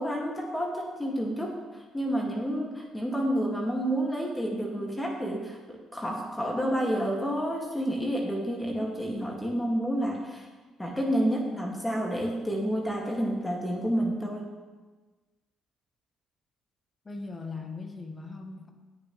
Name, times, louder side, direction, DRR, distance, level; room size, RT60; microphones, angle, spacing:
voice 1, 0.0-10.5 10.8-14.5, equal, 15° left, -1 dB, 2.3 m, -29 dB
voice 2, 17.0-18.7, left 3 dB, 30° left, 4 dB, 1.8 m, -39 dB
19.5 x 6.6 x 3.3 m, 1.3 s
hypercardioid pair, 45°, 0 cm